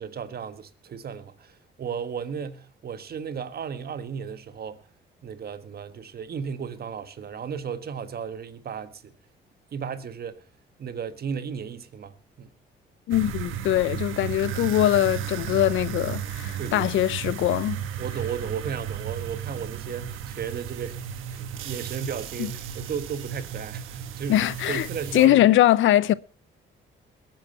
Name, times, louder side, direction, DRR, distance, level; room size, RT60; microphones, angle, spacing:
voice 1, 0.0-4.8 5.2-9.1 9.7-10.4 10.8-12.5 16.6-16.9 18.0-21.0 21.3-25.6, right 7 dB, 50° right, 1.6 m, -35 dB
voice 2, 13.1-17.8 22.4-22.5 24.3-24.9 25.1-26.1, left 13 dB, 75° left, 0.7 m, -22 dB
sound 1, 13.1-25.3, right 9 dB, 85° right, 1.4 m, -34 dB
21.5 x 9.4 x 4.3 m
cardioid pair, 90°, 20 cm